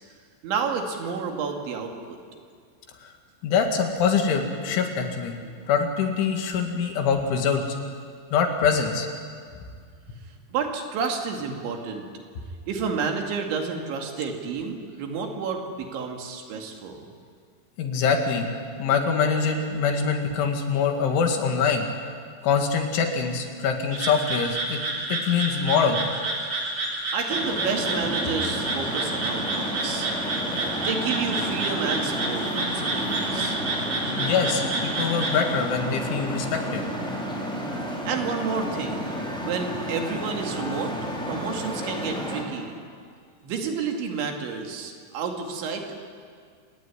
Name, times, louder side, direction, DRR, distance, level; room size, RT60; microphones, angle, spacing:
voice 1, 0.4-2.2 5.4-5.5 10.5-12.1 12.7-17.1 27.1-30.1 30.6-33.6 38.1-39.1 39.4-41.0 41.3-42.8 43.4-46.0, right 5 dB, 75° right, 3 dB, 4.6 m, -30 dB
voice 2, 3.4-5.3 5.7-7.6 8.3-9.1 17.8-18.5 18.8-21.8 22.4-24.8 25.1-26.0 34.2-36.8, left 6 dB, 75° left, 4 dB, 4.6 m, -24 dB
sound 1, 23.9-35.4, right 2 dB, 35° right, 3.8 m, -29 dB
Traffic noise roadway noise, 27.3-42.4, equal, ahead, 3.7 m, -31 dB
27.5 x 17.5 x 9.8 m, 2.1 s
omnidirectional pair, 5.5 m